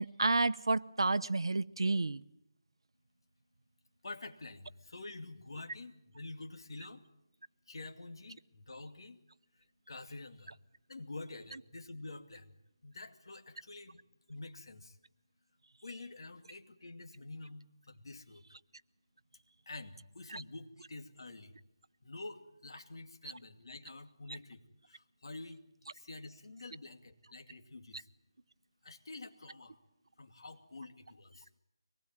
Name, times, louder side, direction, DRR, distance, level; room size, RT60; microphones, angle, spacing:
voice 1, 0.0-2.2 20.3-20.4, right 3 dB, 80° right, 15 dB, 0.9 m, -30 dB
voice 2, 4.0-7.0 7.7-9.2 9.5-10.6 10.9-12.5 12.8-14.0 14.3-15.0 15.8-18.4 19.7-21.5 22.0-25.6 25.9-28.1 28.8-29.8 30.2-31.5, left 2 dB, 65° left, 7 dB, 2.5 m, -48 dB
24.5 x 20.0 x 9.1 m, 0.80 s
figure-of-eight pair, 170°, 3 cm